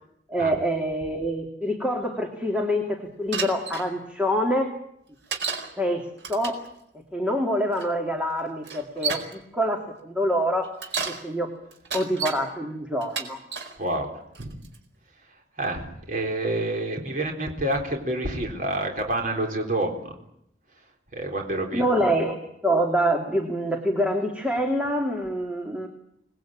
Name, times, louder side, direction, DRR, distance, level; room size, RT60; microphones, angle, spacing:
voice 1, 0.3-4.7 5.8-6.6 7.1-10.7 11.1-11.5 11.9-13.4 21.7-22.4 22.6-25.9, equal, 5° right, 2 dB, 2.6 m, -26 dB
Bicycle, 3.3-3.9 5.3-5.7 6.2-6.7 7.8-7.9 8.6-9.3 10.6-11.2 11.7-12.4 13.0-13.7 14.4-14.8, right 6 dB, 85° right, 4.7 m, -31 dB
voice 2, 13.8-14.1 14.4-14.5 15.6-20.2 21.1-22.1, right 1 dB, 45° right, 2 dB, 3.9 m, -28 dB
26.5 x 20.0 x 8.8 m, 0.75 s
head